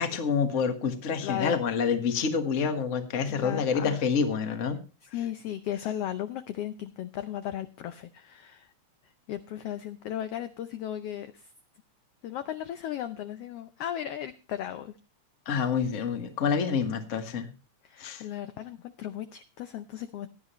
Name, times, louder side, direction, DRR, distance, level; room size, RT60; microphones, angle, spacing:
voice 1, 0.0-4.8 15.4-17.5 18.0-18.2, left 6 dB, 40° left, 7 dB, 1.2 m, -27 dB
voice 2, 1.2-1.6 3.3-4.0 5.0-8.7 9.0-11.5 12.2-15.0 17.8-20.3, left 11 dB, 75° left, 10 dB, 1.4 m, -36 dB
17.0 x 11.0 x 3.0 m, 0.33 s
omnidirectional pair, 3.3 m